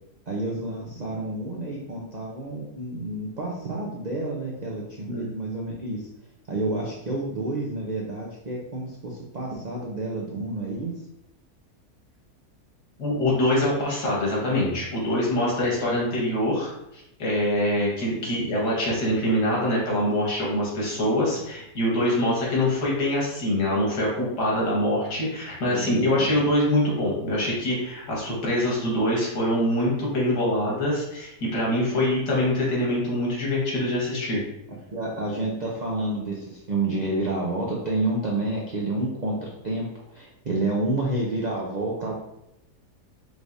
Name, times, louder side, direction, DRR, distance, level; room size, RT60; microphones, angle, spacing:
voice 1, 0.3-6.0 6.5-11.0 18.1-18.2 25.7-26.4 34.9-39.9 40.1-42.2, right 2 dB, 70° right, -3 dB, 0.4 m, -29 dB
voice 2, 13.0-34.4, left 1 dB, 90° left, -4 dB, 2.0 m, -24 dB
4.9 x 3.2 x 2.6 m, 0.84 s
omnidirectional pair, 1.7 m